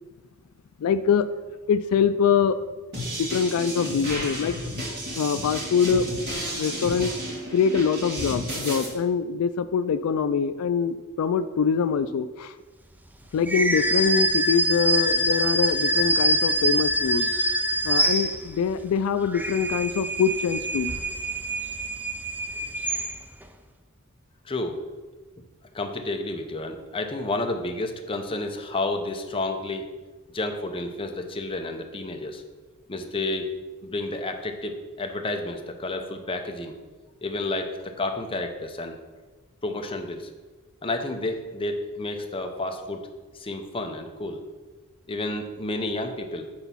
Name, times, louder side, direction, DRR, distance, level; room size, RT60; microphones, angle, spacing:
voice 1, 0.8-1.3 1.7-2.6 3.2-4.6 5.2-6.1 6.5-7.1 7.5-12.5 13.3-17.3 17.8-20.9, left 6 dB, 85° left, 12 dB, 0.3 m, -24 dB
sound 1, 2.9-8.9, equal, 50° right, 2.5 m, -32 dB
sound 2, 13.4-18.7 19.2-23.4, right 1 dB, 10° right, 0.4 m, -25 dB
voice 2, 24.4-24.8 25.7-29.9 30.3-32.4 32.9-33.5 33.8-36.7 37.2-39.0 39.6-40.3 40.8-43.1 43.3-44.4 45.1-46.5, left 2 dB, 25° left, 4 dB, 0.7 m, -30 dB
8.0 x 4.0 x 5.7 m, 1.3 s
head